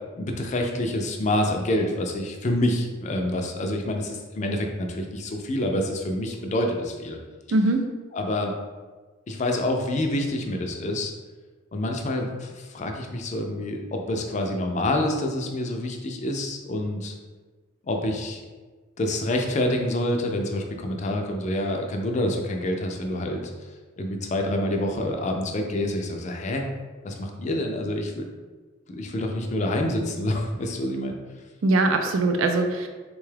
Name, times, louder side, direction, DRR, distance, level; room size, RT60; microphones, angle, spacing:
voice 1, 0.0-7.2 8.1-8.5 9.3-11.1 11.7-17.1 17.9-18.4 19.0-23.4 24.0-26.6 27.0-28.2 28.9-31.1, left 1 dB, 35° left, 2 dB, 0.4 m, -27 dB
voice 2, 7.5-7.9 31.6-32.9, right 2 dB, 80° right, 5 dB, 0.4 m, -21 dB
3.5 x 2.3 x 3.2 m, 1.3 s
head